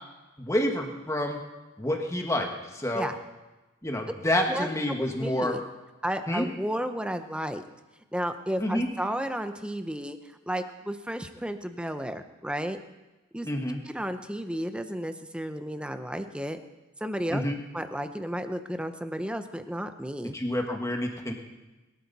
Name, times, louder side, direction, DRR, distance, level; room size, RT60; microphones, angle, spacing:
voice 1, 0.4-1.4 1.8-2.5 2.7-3.1 3.8-5.6 6.3-6.5 8.6-8.9 13.4-13.8 17.3-17.6 20.3-21.3, left 1 dB, 15° left, 2 dB, 1.7 m, -28 dB
voice 2, 4.5-5.6 6.0-7.6 8.1-10.2 10.5-12.8 13.3-13.5 13.8-16.6 17.0-17.4 17.7-20.4, equal, 5° right, 8 dB, 0.8 m, -33 dB
21.5 x 12.5 x 4.2 m, 1.1 s
head